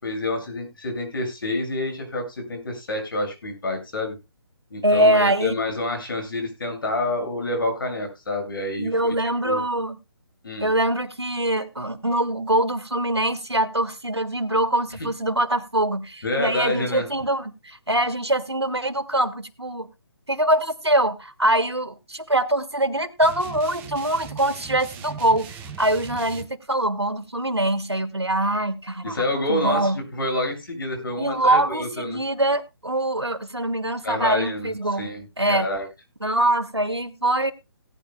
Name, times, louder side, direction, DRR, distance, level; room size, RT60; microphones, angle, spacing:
voice 1, 0.0-4.2 4.7-9.1 9.4-9.6 10.4-10.7 16.2-17.1 29.0-32.2 34.0-35.9, left 2 dB, 55° left, 4 dB, 7.4 m, -28 dB
voice 2, 4.8-5.6 8.8-10.0 10.6-19.9 20.3-30.0 31.2-35.1 35.4-35.7 36.2-37.5, right 1 dB, 85° right, 12 dB, 1.6 m, -23 dB
sound 1, 23.2-26.5, right 7 dB, 15° right, 0.9 m, -39 dB
18.5 x 10.0 x 2.2 m, 0.26 s
figure-of-eight pair, 140°, 13 cm